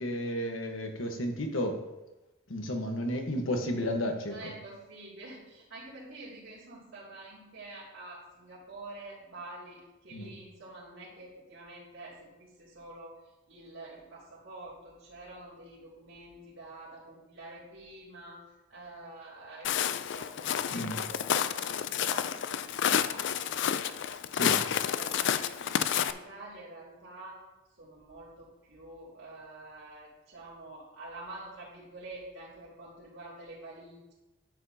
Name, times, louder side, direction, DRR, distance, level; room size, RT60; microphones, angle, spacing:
voice 1, 0.0-1.8 2.5-4.5 10.1-10.3 20.7-21.0 24.3-24.6, equal, 80° left, 4 dB, 1.2 m, -32 dB
voice 2, 4.3-13.2 13.5-18.4 18.7-22.4 22.6-24.2 24.6-27.4 27.8-34.1, right 2 dB, 80° right, -11 dB, 2.8 m, -48 dB
Walk footsteps, 19.6-26.1, left 9 dB, 65° left, 0.4 m, -30 dB
10.5 x 7.7 x 2.8 m, 1.0 s
head